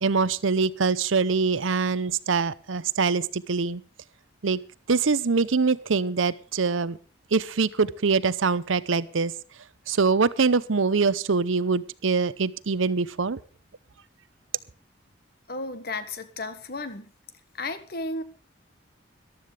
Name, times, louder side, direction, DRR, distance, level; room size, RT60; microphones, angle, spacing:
voice 1, 0.0-3.8 4.4-4.6 4.9-7.0 7.3-9.3 9.9-13.4, right 4 dB, 80° right, 0.7 m, -24 dB
voice 2, 15.5-17.1 17.5-18.2, left 2 dB, 50° left, 1.5 m, -33 dB
14.5 x 12.5 x 5.0 m
head